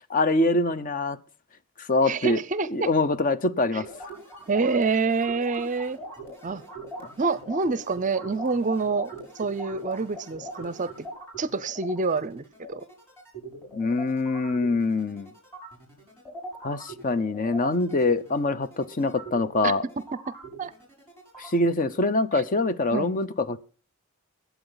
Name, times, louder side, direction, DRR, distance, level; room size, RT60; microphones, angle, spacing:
voice 1, 0.1-1.2 1.8-2.4 2.7-3.9 13.7-15.3 16.6-19.8 21.4-23.6, left 2 dB, 40° left, 13 dB, 0.7 m, -24 dB
voice 2, 2.1-2.9 3.7-3.8 4.5-6.0 6.4-6.6 7.2-9.1 9.4-10.9 11.4-12.8 19.6-19.7 20.6-20.7 22.3-22.4 22.9-23.1, right 4 dB, 35° right, 18 dB, 0.5 m, -27 dB
sound 1, 3.8-21.7, right 1 dB, 10° left, 7.8 m, -41 dB
21.0 x 8.1 x 3.9 m, 0.38 s
head